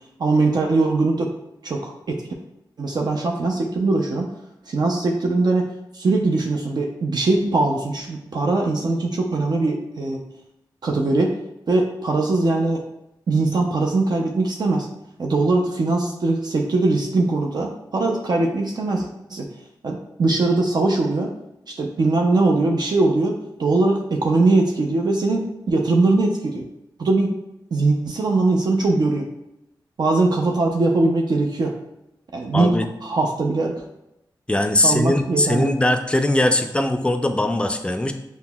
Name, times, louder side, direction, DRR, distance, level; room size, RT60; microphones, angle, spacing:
voice 1, 0.2-1.3 1.6-2.2 2.8-4.3 4.7-5.6 5.9-10.2 10.8-11.3 11.7-12.8 13.3-14.9 15.2-19.5 19.8-21.3 21.7-26.7 27.0-27.4 27.7-29.3 30.0-31.7 32.3-32.7 33.0-33.7 34.8-35.7, right 2 dB, 60° right, 1 dB, 0.4 m, -21 dB
voice 2, 32.5-32.9 34.5-38.1, left 1 dB, 15° left, 7 dB, 0.4 m, -20 dB
5.5 x 2.0 x 2.2 m, 0.87 s
cardioid pair, 60°, 8 cm